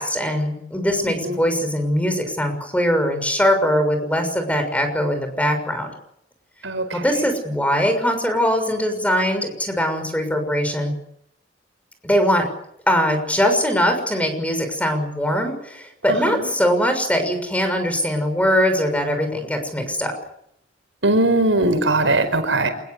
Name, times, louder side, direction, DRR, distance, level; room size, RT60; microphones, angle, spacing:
voice 1, 0.0-5.9 6.9-10.9 12.0-12.5 12.9-20.1, equal, 5° left, 7 dB, 6.4 m, -21 dB
voice 2, 21.0-22.7, right 2 dB, 80° right, 9 dB, 5.0 m, -19 dB
27.5 x 21.0 x 8.3 m, 0.75 s
head